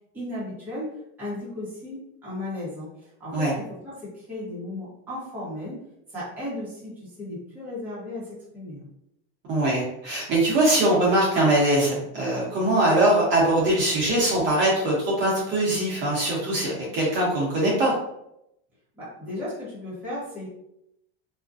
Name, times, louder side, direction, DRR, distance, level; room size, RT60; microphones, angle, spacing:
voice 1, 0.1-0.9 1.2-2.9 3.2-5.8 6.1-8.9 19.0-20.5, left 1 dB, 5° right, -10 dB, 0.8 m, -35 dB
voice 2, 9.5-17.9, right 1 dB, 35° right, -5 dB, 0.8 m, -22 dB
2.4 x 2.1 x 2.4 m, 0.81 s
supercardioid pair, 155°, 31 cm